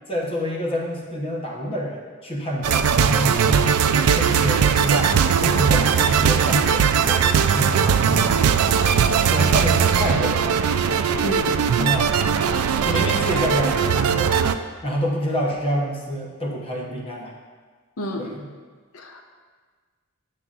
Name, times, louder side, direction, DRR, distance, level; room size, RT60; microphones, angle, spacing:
voice 1, 0.1-3.7 4.1-8.6 9.3-10.6 11.7-12.1 12.8-14.3 14.8-17.4 18.2-18.5, equal, 25° left, -2 dB, 0.9 m, -27 dB
sound 1, 2.6-14.5, right 7 dB, 90° right, 0.4 m, -19 dB
voice 2, 11.2-11.6 18.0-18.3 18.9-19.2, left 1 dB, 70° left, 2 dB, 0.7 m, -29 dB
9.9 x 6.7 x 2.5 m, 1.5 s
head